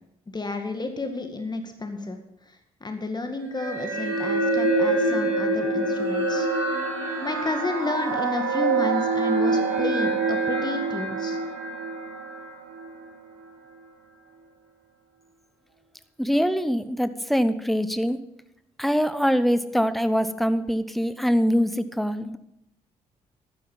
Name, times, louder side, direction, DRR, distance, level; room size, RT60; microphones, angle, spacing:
voice 1, 0.3-2.2 2.8-6.5 7.2-11.4, left 2 dB, 25° left, 5 dB, 1.9 m, -31 dB
sound 1, 3.6-13.1, right 3 dB, 75° right, 2.9 m, -25 dB
voice 2, 16.2-18.2 18.8-22.4, equal, ahead, 12 dB, 1.0 m, -23 dB
12.0 x 9.3 x 5.6 m, 0.82 s
hypercardioid pair, 45°, 18 cm